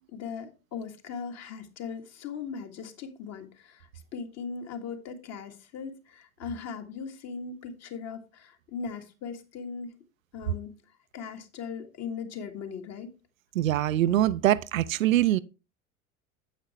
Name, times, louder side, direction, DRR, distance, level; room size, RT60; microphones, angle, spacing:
voice 1, 0.1-9.9 10.3-10.8 11.1-13.1, left 6 dB, 35° left, 1.7 m, -39 dB
voice 2, 13.5-15.4, right 13 dB, 65° right, 0.5 m, -23 dB
9.1 x 8.1 x 3.1 m
figure-of-eight pair, 80°, 43 cm